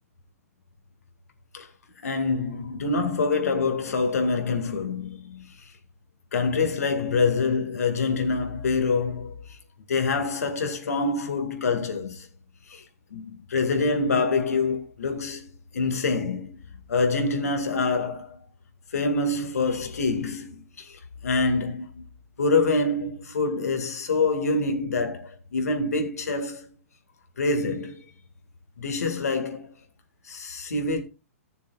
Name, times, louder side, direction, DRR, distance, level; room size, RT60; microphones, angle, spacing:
voice 1, 2.0-5.5 6.3-9.6 9.9-12.3 12.7-12.8 13.1-16.6 16.9-18.4 18.9-22.0 22.4-26.7 27.4-28.0 28.8-29.7 30.3-31.0, left 3 dB, 80° left, 2.1 m, -26 dB
14.5 x 6.9 x 2.4 m
hypercardioid pair, 130°, 8 cm